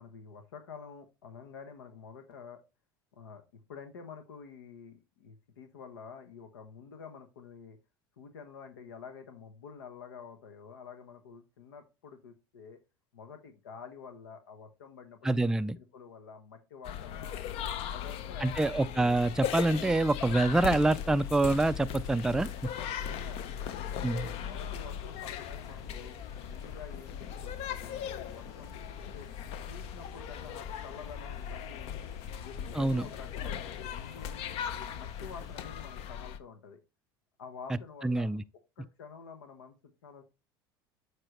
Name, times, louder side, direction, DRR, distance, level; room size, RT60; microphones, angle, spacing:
voice 1, 0.0-2.6 3.1-7.8 8.2-12.8 13.1-17.5 17.9-18.6 22.8-23.9 24.2-29.3 29.7-32.0 32.3-34.4 34.7-36.8 37.4-38.4 38.8-40.2, left 6 dB, 80° left, 1.0 m, -49 dB
voice 2, 15.2-15.8 18.4-22.5 24.0-24.3 32.7-33.0 38.0-38.4, right 2 dB, 5° right, 0.3 m, -26 dB
sound 1, 16.8-36.4, left 9 dB, 55° left, 0.7 m, -38 dB
sound 2, 19.7-35.6, left 4 dB, 25° left, 2.0 m, -52 dB
7.6 x 4.7 x 3.1 m
hypercardioid pair, 80°, 12 cm